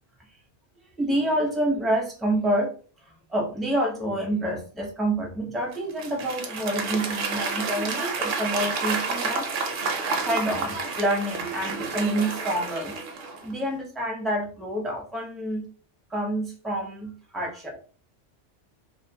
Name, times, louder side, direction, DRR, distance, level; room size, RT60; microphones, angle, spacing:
voice 1, 1.0-2.7 3.3-9.5 10.2-12.9 13.4-15.6 16.1-17.8, right 1 dB, ahead, -1 dB, 0.4 m, -27 dB
Applause / Crowd, 5.7-13.5, right 4 dB, 60° right, 0.6 m, -30 dB
2.5 x 2.4 x 2.7 m, 0.40 s
omnidirectional pair, 1.2 m